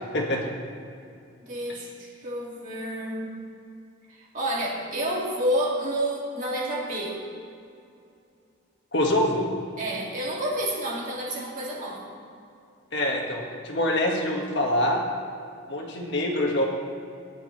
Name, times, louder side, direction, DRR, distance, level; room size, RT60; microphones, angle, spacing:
voice 1, 1.4-3.3 4.1-7.2 9.8-12.1, right 1 dB, 40° right, -4 dB, 2.4 m, -29 dB
voice 2, 8.9-9.5 12.9-15.0 15.7-16.7, left 1 dB, 55° left, 0 dB, 1.7 m, -25 dB
16.5 x 10.5 x 3.3 m, 2.5 s
head